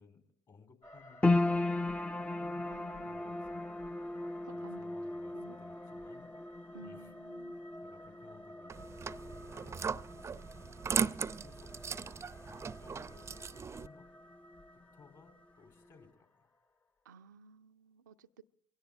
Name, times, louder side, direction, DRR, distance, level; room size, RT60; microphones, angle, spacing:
voice 1, 0.0-2.7 3.1-3.7 4.1-7.1 7.8-9.8 10.2-10.8 11.3-14.1 14.9-16.5, left 5 dB, 45° left, 3.5 m, -61 dB
sound 1, 0.8-16.8, left 1 dB, 30° left, 1.1 m, -55 dB
sound 2, 1.2-13.6 13.9-14.8 15.3-15.4, left 2 dB, 15° left, 0.6 m, -37 dB
voice 2, 2.7-3.6 4.4-4.8 5.3-5.6 6.7-7.6 17.0-18.4, right 4 dB, 90° right, 0.6 m, -56 dB
sound 3, 8.7-13.9, right 5 dB, 30° right, 0.6 m, -38 dB
23.0 x 17.0 x 3.5 m
hypercardioid pair, 60°, 9 cm